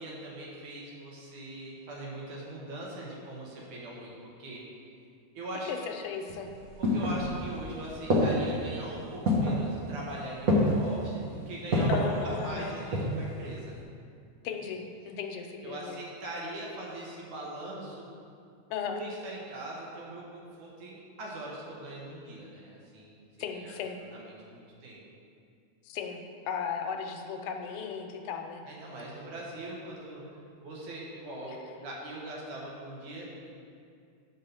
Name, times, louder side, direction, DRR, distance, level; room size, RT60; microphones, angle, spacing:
voice 1, 0.0-4.6 5.3-5.7 6.8-13.7 15.6-18.1 18.9-23.2 23.6-23.7 24.1-25.0 28.6-30.3 30.6-33.5, right 1 dB, 75° right, -4 dB, 2.9 m, -41 dB
voice 2, 5.7-6.5 11.9-12.9 14.4-16.0 18.7-19.0 23.4-24.0 25.8-28.6, left 6 dB, 85° left, 4 dB, 2.3 m, -36 dB
sound 1, 6.3-7.6 8.1-8.6 9.2-9.7 10.5-10.9 11.7-12.1 12.7-13.3 13.5-13.6, left 1 dB, 60° right, 0.9 m, -26 dB
9.9 x 4.1 x 7.0 m, 2.4 s
omnidirectional pair, 3.5 m